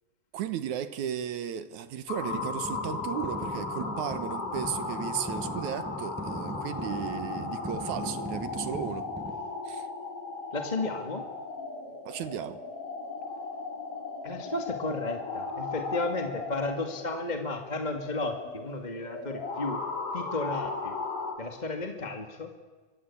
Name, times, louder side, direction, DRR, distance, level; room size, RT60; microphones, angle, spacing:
voice 1, 0.3-9.1 9.7-9.9 12.1-12.6, right 9 dB, 65° right, 12 dB, 2.3 m, -35 dB
sound 1, 2.1-21.3, left 4 dB, 65° left, 5.4 m, -37 dB
sound 2, 2.3-9.3, equal, 5° right, 5.4 m, -39 dB
voice 2, 10.5-11.2 14.2-19.8 20.1-20.9 21.4-22.5, left 2 dB, 20° left, 4 dB, 1.5 m, -33 dB
24.5 x 24.0 x 8.6 m, 1.4 s
omnidirectional pair, 3.9 m